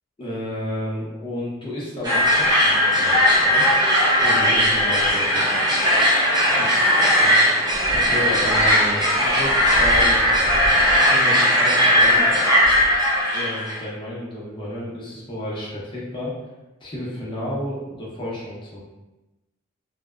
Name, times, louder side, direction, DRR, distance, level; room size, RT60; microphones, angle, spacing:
voice 1, 0.2-3.7 4.1-5.5 6.6-6.7 7.2-7.4 7.9-10.3 11.0-12.3 13.3-16.4 16.8-18.8, left 1 dB, 25° left, -7 dB, 0.7 m, -31 dB
sound 1, 2.0-13.8, equal, 20° right, 0.5 m, -18 dB
2.6 x 2.1 x 2.3 m, 1.0 s
head